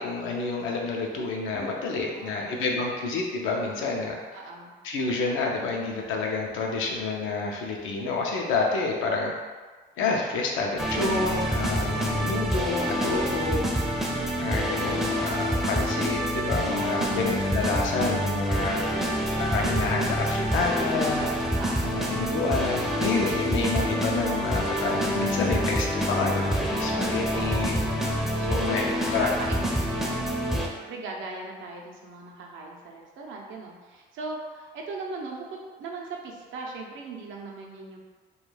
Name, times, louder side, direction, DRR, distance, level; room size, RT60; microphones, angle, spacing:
voice 1, 0.0-4.2 4.8-9.3 10.0-13.6 14.4-18.8 19.4-21.3 21.8-27.7 28.5-28.8 29.1-29.3, left 3 dB, 85° left, 0 dB, 0.5 m, -28 dB
voice 2, 2.1-3.1 4.3-4.7 13.3-13.7 21.5-22.0 27.3-30.3 30.9-38.0, right 3 dB, 75° right, -1 dB, 0.5 m, -39 dB
sound 1, 10.8-30.7, equal, ahead, 0.4 m, -27 dB
2.3 x 2.2 x 3.1 m, 1.4 s
cardioid pair, 90°, 20 cm